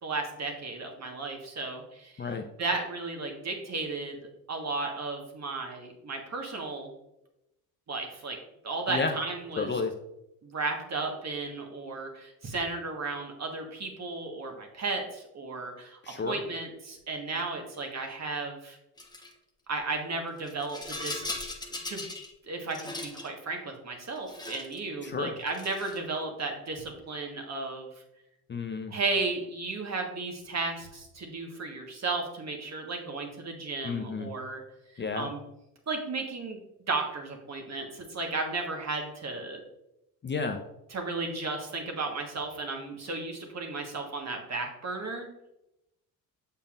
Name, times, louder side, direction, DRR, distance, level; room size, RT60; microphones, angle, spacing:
voice 1, 0.0-2.3 2.6-4.2 4.5-6.9 7.9-8.4 8.6-9.7 10.4-16.0 16.2-18.8 19.7-21.3 21.7-22.1 22.5-27.9 28.9-34.6 34.9-35.4 35.9-36.6 36.9-39.6 40.9-45.3, right 3 dB, 35° right, 3 dB, 1.5 m, -34 dB
voice 2, 9.6-9.9 16.0-16.4 25.0-25.3 28.5-28.9 33.8-34.3 35.0-35.3 40.2-40.6, left 4 dB, 25° left, 4 dB, 0.7 m, -31 dB
Rattle, 19.0-19.3 20.4-22.3 22.6-23.3 24.1-24.8 25.4-26.1, left 2 dB, 10° left, 1.0 m, -39 dB
6.9 x 5.5 x 2.5 m, 0.87 s
hypercardioid pair, 60°, 44 cm